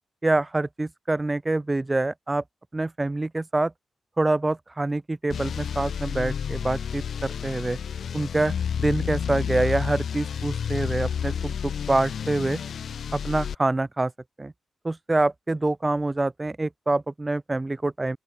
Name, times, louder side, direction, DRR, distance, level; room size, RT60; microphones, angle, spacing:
voice 1, 0.2-2.4 2.7-3.7 4.2-7.8 8.1-12.6 13.1-14.1 14.4-14.5 14.8-18.2, right 2 dB, 15° right, 5.6 m, -26 dB
sound 1, 5.3-13.5, left 7 dB, 65° left, 5.7 m, -30 dB
open air
wide cardioid pair, 165°, 0 cm